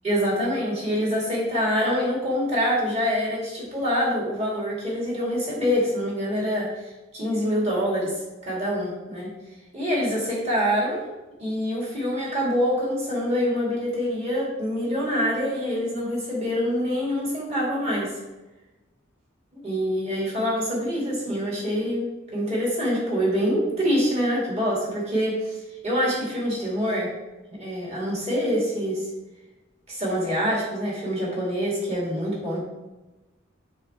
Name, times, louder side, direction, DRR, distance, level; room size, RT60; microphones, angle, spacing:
voice 1, 0.0-6.7 7.1-8.1 8.4-9.3 9.7-11.0 11.4-18.1 19.5-22.1 22.3-25.5 25.8-27.1 27.6-29.0 29.9-32.6, equal, 30° right, -5 dB, 2.5 m, -25 dB
6.9 x 5.5 x 3.6 m, 1.1 s
head